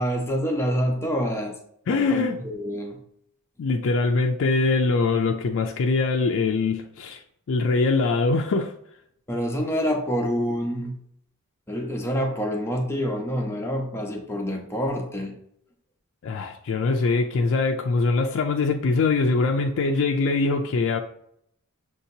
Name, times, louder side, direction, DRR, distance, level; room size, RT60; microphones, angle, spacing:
voice 1, 0.0-1.5 1.9-3.0 9.3-11.0 11.7-15.3, equal, 10° left, 0.7 m, -27 dB
voice 2, 1.9-2.4 3.6-7.2 7.5-8.7 16.2-21.0, left 3 dB, 60° left, 0.3 m, -23 dB
6.4 x 2.8 x 2.7 m
head